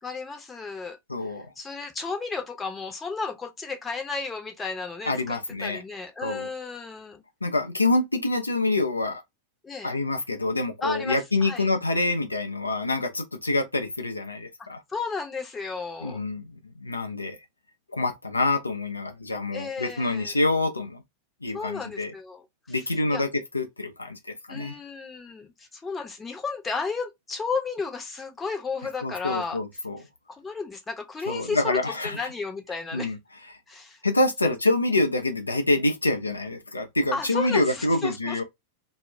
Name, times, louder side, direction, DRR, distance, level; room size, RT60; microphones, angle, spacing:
voice 1, 0.0-1.0 1.2-7.2 9.6-9.9 10.8-11.7 14.9-16.2 19.5-20.3 21.5-22.8 23.1-23.2 24.5-29.6 30.3-33.1 33.7-34.0 34.4-34.6 37.1-38.4, left 4 dB, 15° left, 0.7 m, -33 dB
voice 2, 1.1-1.5 5.1-5.8 6.2-6.5 7.4-9.2 9.8-14.8 16.0-17.4 17.9-21.0 21.4-22.1 22.7-24.7 29.0-30.0 31.3-32.3 32.9-33.2 34.0-38.4, left 2 dB, 80° left, 0.4 m, -26 dB
2.2 x 2.0 x 3.2 m
figure-of-eight pair, 90°, 0 cm